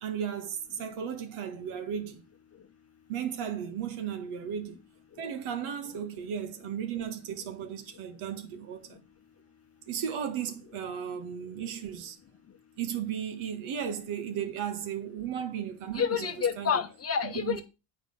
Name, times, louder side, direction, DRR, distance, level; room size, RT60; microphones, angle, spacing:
voice 1, 0.0-2.2 3.1-4.8 5.2-9.0 9.9-12.2 12.8-16.7 17.2-17.6, right 8 dB, 80° right, 1.7 m, -35 dB
voice 2, 15.9-17.6, left 7 dB, 30° left, 0.9 m, -29 dB
8.8 x 4.5 x 5.4 m
cardioid pair, 145°, 48 cm